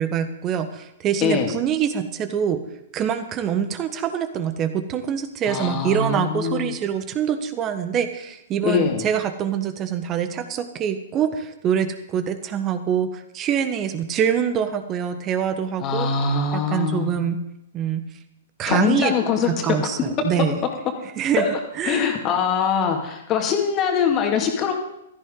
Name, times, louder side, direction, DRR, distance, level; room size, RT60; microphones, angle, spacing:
voice 1, 0.0-2.6 2.9-16.1 16.5-17.4 17.7-18.0 18.6-19.1 19.4-20.6 21.2-21.4 21.8-22.0, right 8 dB, 25° right, 10 dB, 1.4 m, -24 dB
voice 2, 1.2-1.5 5.5-6.7 8.6-9.0 15.8-17.1 18.6-19.5 21.4-24.7, left 6 dB, 30° left, 3 dB, 2.3 m, -23 dB
16.0 x 14.0 x 3.9 m, 0.86 s
figure-of-eight pair, 110°, 0 cm